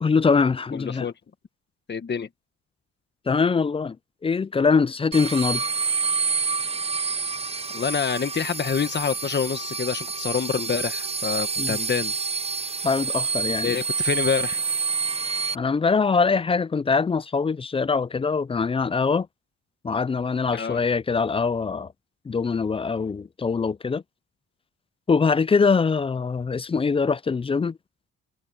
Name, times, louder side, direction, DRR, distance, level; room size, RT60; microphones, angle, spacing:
voice 1, 0.0-1.1 3.3-4.0 4.2-5.6 11.6-11.8 12.8-13.7 15.5-19.3 19.8-21.9 22.3-24.0 25.1-27.8, left 5 dB, 20° left, 0.4 m, -23 dB
voice 2, 0.7-1.1 1.9-2.3 7.7-12.1 13.6-14.6 20.5-20.8, left 6 dB, 35° left, 1.4 m, -27 dB
sound 1, 5.1-15.5, right 5 dB, 20° right, 0.8 m, -28 dB
cardioid pair, 90°, 30 cm